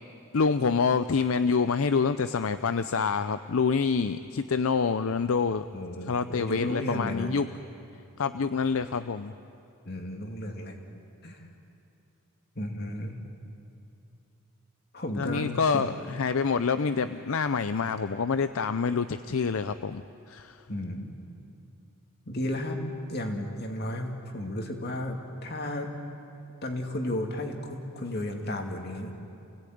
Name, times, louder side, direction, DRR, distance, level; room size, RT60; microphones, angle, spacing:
voice 1, 0.3-5.7 6.1-7.5 8.2-9.3 15.2-20.6, left 5 dB, 65° left, 12 dB, 0.5 m, -27 dB
voice 2, 5.7-7.3 9.9-10.8 11.2-11.4 12.6-13.2 14.9-15.8 20.7-21.2 22.3-22.8 23.1-25.9 26.6-29.1, left 1 dB, 45° left, 3 dB, 2.5 m, -33 dB
28.5 x 17.5 x 9.4 m, 2.7 s
head